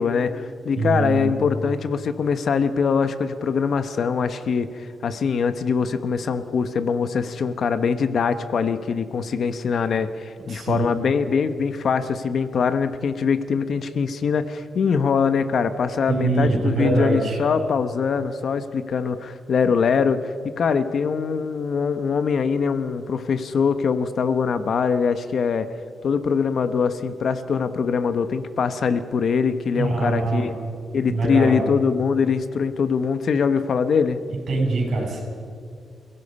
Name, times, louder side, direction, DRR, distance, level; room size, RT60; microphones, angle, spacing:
voice 1, 0.0-25.7 26.0-30.5 30.9-34.2, left 6 dB, 50° left, 11 dB, 0.9 m, -23 dB
voice 2, 0.8-1.3 10.5-10.9 16.1-17.4 29.7-30.5 31.1-31.6 34.5-35.2, right 3 dB, 50° right, -1 dB, 7.7 m, -23 dB
30.0 x 16.5 x 5.4 m, 2.3 s
wide cardioid pair, 155°, 0 cm